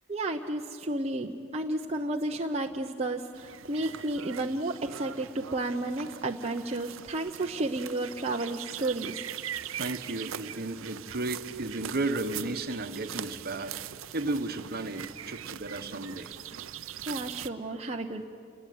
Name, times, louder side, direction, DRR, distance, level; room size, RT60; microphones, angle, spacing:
voice 1, 0.1-9.2 17.1-18.3, right 2 dB, 30° right, 2 dB, 0.9 m, -32 dB
sound 1, 3.3-17.5, right 10 dB, 75° right, 0.6 m, -41 dB
voice 2, 9.8-13.8 14.1-16.3, right 2 dB, 50° right, 9 dB, 1.3 m, -33 dB
29.0 x 20.0 x 9.4 m, 2.5 s
head